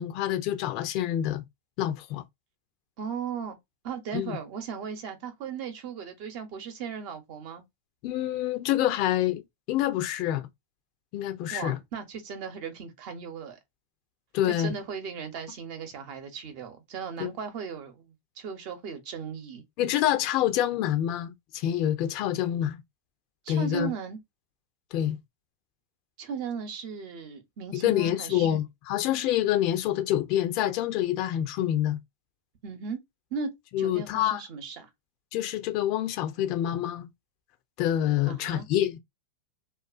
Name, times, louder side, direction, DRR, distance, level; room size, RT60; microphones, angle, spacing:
voice 1, 0.0-1.4 1.8-2.2 4.1-4.4 8.0-9.4 9.7-10.5 11.1-11.8 14.3-14.7 17.2-17.3 19.8-22.8 23.5-23.9 24.9-25.2 27.8-32.0 33.7-34.4 35.3-37.1 37.8-39.0, left 12 dB, 50° left, 0.5 m, -27 dB
voice 2, 3.0-3.6 3.8-7.6 11.5-13.6 14.5-19.6 23.4-24.2 26.2-28.6 32.6-33.0 33.3-33.5 33.8-34.9 38.3-38.7, right 6 dB, 55° right, 0.8 m, -37 dB
2.4 x 2.3 x 2.4 m
hypercardioid pair, 110°, 0 cm